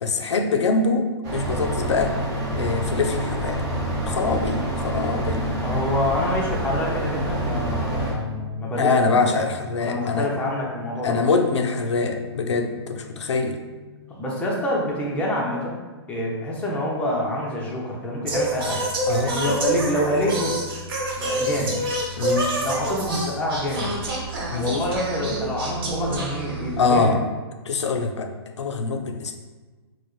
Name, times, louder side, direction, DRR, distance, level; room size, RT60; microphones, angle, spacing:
voice 1, 0.0-2.2 2.5-3.6 4.1-5.5 8.8-10.3 11.0-13.6 19.1-19.5 22.2-22.5 24.5-24.8 26.8-27.2 27.7-29.4, left 4 dB, 85° left, 6 dB, 0.4 m, -24 dB
sound 1, 1.2-8.1, right 1 dB, 30° right, 1.0 m, -27 dB
voice 2, 5.6-8.9 9.2-9.4 9.8-11.2 14.1-15.8 16.1-18.8 19.2-20.6 21.2-21.8 22.6-23.9 24.5-27.2, left 1 dB, 10° left, -3 dB, 0.6 m, -27 dB
sound 2, 7.2-16.2, left 7 dB, 70° right, 0.5 m, -44 dB
Singing, 18.2-27.0, right 1 dB, 50° right, 1.1 m, -27 dB
4.3 x 2.1 x 3.1 m, 1.3 s
hypercardioid pair, 135°, 14 cm